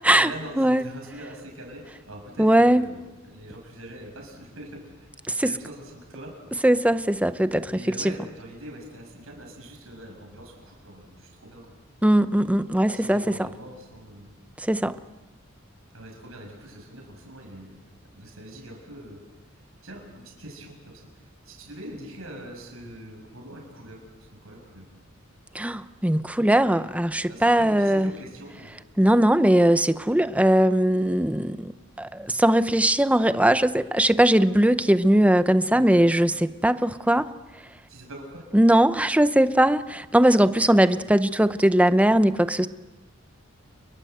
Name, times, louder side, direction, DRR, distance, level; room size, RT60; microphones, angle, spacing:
voice 1, 0.2-4.8 5.4-6.3 7.7-11.6 12.9-14.3 15.9-17.7 18.1-19.2 19.8-24.9 27.3-28.7 35.7-36.1 36.4-36.5 37.9-38.4, right 1 dB, 80° right, 6.4 m, -43 dB
voice 2, 2.4-2.8 5.3-5.5 6.6-8.0 12.0-13.5 14.6-15.0 25.5-28.1 29.0-31.7 32.0-37.3 38.5-42.7, right 1 dB, 5° right, 0.8 m, -20 dB
30.0 x 22.5 x 7.9 m
head